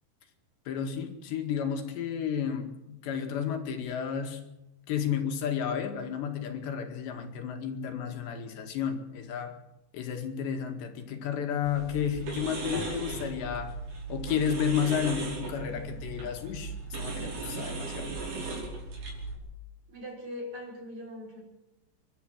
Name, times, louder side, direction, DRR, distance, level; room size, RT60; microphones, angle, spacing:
voice 1, 0.7-4.4 4.9-9.6 9.9-13.7 14.1-18.1, left 8 dB, 80° left, 4 dB, 4.2 m, -32 dB
sound 1, 11.6-19.3, right 3 dB, 65° right, 7.1 m, -37 dB
voice 2, 19.9-21.4, left 1 dB, 40° right, -1 dB, 7.1 m, -40 dB
30.0 x 12.0 x 7.9 m, 0.95 s
omnidirectional pair, 5.0 m